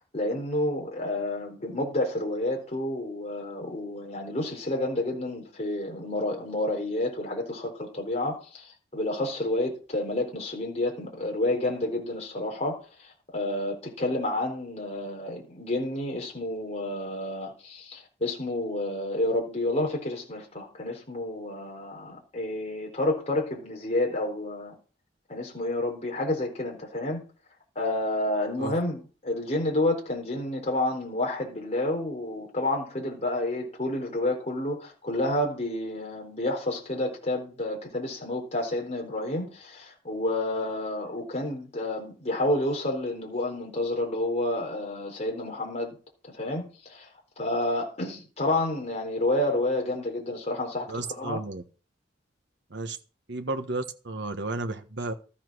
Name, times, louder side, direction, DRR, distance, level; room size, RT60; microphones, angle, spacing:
voice 1, 0.1-8.6 8.9-24.8 25.3-27.2 27.8-46.0 46.3-47.1 47.4-51.4, left 1 dB, 35° left, 4.0 m, -30 dB
voice 2, 50.9-51.6 52.7-53.0 53.3-55.1, right 2 dB, 65° right, 1.5 m, -33 dB
13.5 x 7.4 x 6.3 m
head